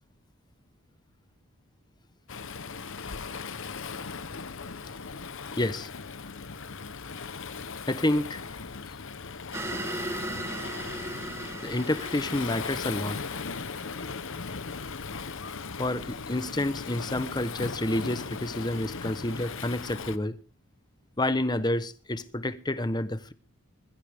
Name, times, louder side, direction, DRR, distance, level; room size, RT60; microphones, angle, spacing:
Waves surf, 2.3-20.2, left 5 dB, 60° left, 1.0 m, -38 dB
voice 1, 5.6-5.9 7.8-8.5 11.6-13.2 15.8-20.4 21.2-23.3, left 1 dB, 20° left, 1.0 m, -29 dB
sound 1, 9.5-14.1, right 1 dB, 10° right, 1.3 m, -37 dB
21.5 x 14.5 x 3.6 m
head